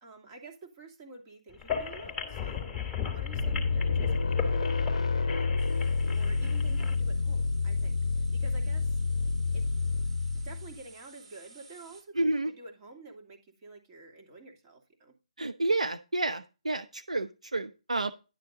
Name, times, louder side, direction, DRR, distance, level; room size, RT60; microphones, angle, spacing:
voice 1, 0.0-9.0 9.5-9.7 10.3-15.1, right 3 dB, 30° right, 2.6 m, -49 dB
sound 1, 1.5-6.9, left 8 dB, 5° left, 2.3 m, -36 dB
sound 2, 3.4-10.8, left 4 dB, 65° left, 0.6 m, -29 dB
sound 3, 5.6-12.0, right 4 dB, 55° right, 4.0 m, -56 dB
voice 2, 12.2-12.5 15.4-18.1, right 2 dB, 85° right, 0.8 m, -30 dB
11.0 x 6.8 x 3.9 m
figure-of-eight pair, 145°, 3 cm